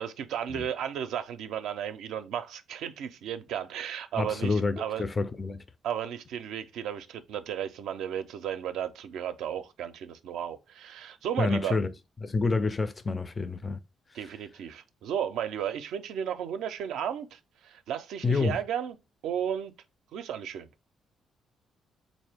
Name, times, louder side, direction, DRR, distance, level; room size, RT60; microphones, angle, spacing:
voice 1, 0.0-5.0 5.8-11.8 14.1-19.0 19.2-19.7 20.1-20.7, right 9 dB, 85° right, 0.4 m, -34 dB
voice 2, 4.2-5.6 11.4-11.9 12.2-13.8 18.2-18.6, left 3 dB, 25° left, 0.3 m, -28 dB
3.7 x 2.5 x 3.3 m
cardioid pair, 90°, 0 cm